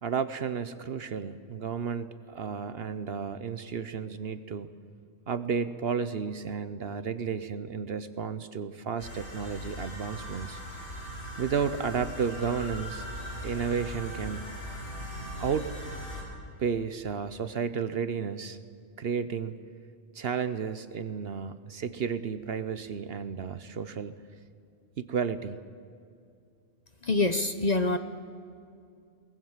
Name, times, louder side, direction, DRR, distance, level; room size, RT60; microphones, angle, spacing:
voice 1, 0.0-4.7 5.3-10.6 11.4-13.0 13.4-14.5 15.4-15.7 16.6-18.6 19.0-19.6 20.1-24.1 25.0-25.6, right 6 dB, 55° right, 13 dB, 0.9 m, -32 dB
sound 1, 9.0-16.2, equal, 65° left, 4.9 m, -39 dB
voice 2, 27.0-28.0, left 2 dB, 40° left, 9 dB, 0.8 m, -25 dB
23.0 x 19.0 x 7.3 m, 2.4 s
omnidirectional pair, 1.3 m